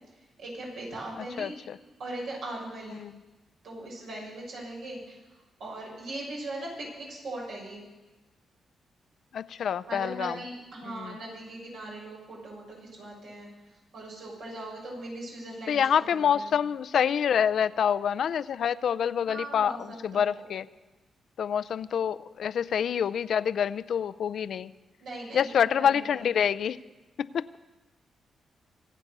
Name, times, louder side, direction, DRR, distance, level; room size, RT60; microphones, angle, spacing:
voice 1, 0.4-1.5 2.0-3.0 3.6-5.2 5.6-7.8 9.9-13.5 13.9-16.5 19.3-20.4 25.0-25.5 25.8-26.3, right 1 dB, 80° right, -3 dB, 6.8 m, -39 dB
voice 2, 1.2-1.8 2.9-3.1 9.3-10.3 10.9-11.2 15.7-20.7 21.4-24.7 25.3-26.8 27.2-27.6, left 8 dB, 70° left, 15 dB, 0.4 m, -27 dB
24.5 x 8.5 x 6.7 m, 1.1 s
cardioid pair, 80°, 0 cm